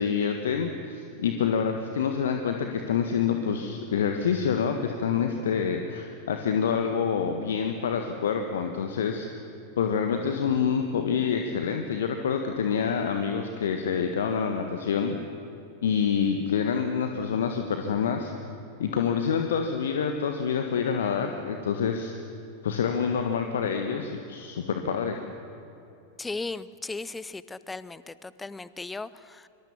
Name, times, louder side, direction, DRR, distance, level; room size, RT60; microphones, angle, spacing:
voice 1, 0.0-9.4 9.8-15.2 15.8-18.3 18.8-22.1 22.6-25.2, left 6 dB, 60° left, 5 dB, 1.6 m, -27 dB
voice 2, 26.2-29.5, left 3 dB, 10° left, 17 dB, 0.8 m, -37 dB
24.5 x 24.5 x 7.4 m, 2.8 s
figure-of-eight pair, 90°, 0 cm